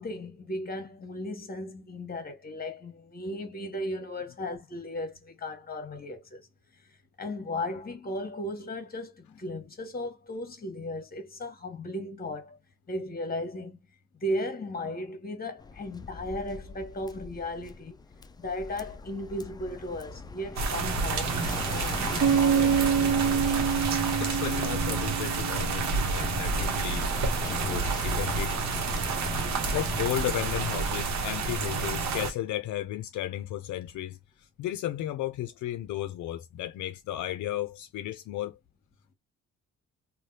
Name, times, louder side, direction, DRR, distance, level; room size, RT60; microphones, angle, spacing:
voice 1, 0.0-6.4 7.2-12.6 12.9-13.8 14.2-18.0 18.4-23.1, left 1 dB, 30° left, 1.2 m, -36 dB
Waves surf, 15.6-30.4, left 4 dB, 15° left, 0.3 m, -41 dB
sound 1, 20.6-32.3, right 4 dB, 65° right, 0.9 m, -29 dB
Bass guitar, 22.2-26.0, right 7 dB, 40° right, 0.5 m, -26 dB
voice 2, 24.2-27.1 27.4-28.6 29.7-38.6, left 13 dB, 75° left, 0.5 m, -34 dB
3.2 x 2.3 x 2.7 m
cardioid pair, 90°, 30 cm